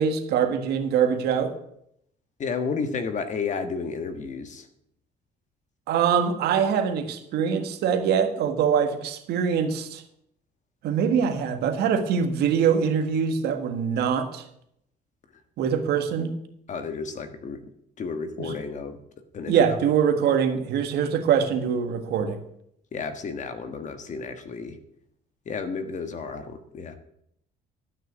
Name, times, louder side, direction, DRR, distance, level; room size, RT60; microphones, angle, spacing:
voice 1, 0.0-1.5 5.9-10.0 10.8-14.5 15.6-16.3 18.4-18.5 19.5-22.4, right 7 dB, 75° right, 7 dB, 1.7 m, -23 dB
voice 2, 2.4-4.7 16.7-17.6 18.0-19.0 19.3-19.8 22.9-24.8 25.4-27.0, left 5 dB, 45° left, 8 dB, 1.5 m, -32 dB
12.0 x 6.4 x 8.0 m, 0.74 s
cardioid pair, 110°, 17 cm